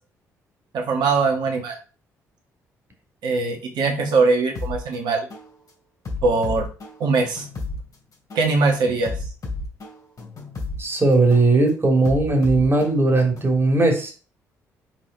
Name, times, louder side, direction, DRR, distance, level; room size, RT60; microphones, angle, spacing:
voice 1, 0.7-1.8 3.2-5.2 6.2-6.7 7.0-7.5 8.4-9.1, right 3 dB, 60° right, 2 dB, 2.0 m, -21 dB
sound 1, 4.5-4.8 5.3-5.5 6.0-7.8 8.3-8.5 9.0-10.8 11.3-11.5 12.0-13.5, left 3 dB, 45° left, 2.8 m, -32 dB
voice 2, 10.8-14.1, right 2 dB, 30° right, 2 dB, 2.6 m, -18 dB
6.2 x 4.2 x 4.0 m, 0.34 s
figure-of-eight pair, 45°, 8 cm